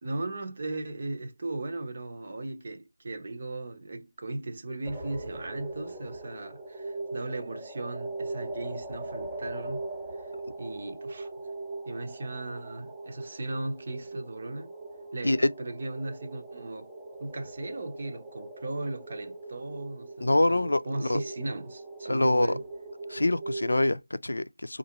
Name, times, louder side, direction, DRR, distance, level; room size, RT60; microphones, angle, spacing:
voice 1, 0.0-9.9 10.1-10.3 10.6-11.3 11.9-14.7 15.1-16.9 17.2-22.6, right 2 dB, 40° right, 0.8 m, -37 dB
sound 1, 4.8-24.0, right 2 dB, 5° right, 0.6 m, -40 dB
voice 2, 20.2-21.2 22.1-22.6 23.1-24.8, left 1 dB, 85° left, 0.4 m, -25 dB
4.2 x 2.5 x 2.8 m
figure-of-eight pair, 170°, 0 cm